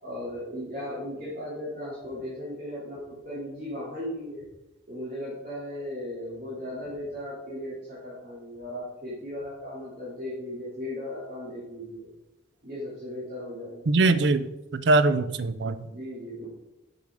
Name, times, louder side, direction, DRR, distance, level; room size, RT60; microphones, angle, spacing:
voice 1, 0.0-4.4 4.9-12.1 12.6-13.9 15.8-16.5, left 1 dB, 45° right, -9 dB, 2.9 m, -37 dB
voice 2, 13.9-15.8, right 3 dB, 65° right, 13 dB, 0.5 m, -22 dB
6.8 x 6.6 x 4.9 m, 0.97 s
head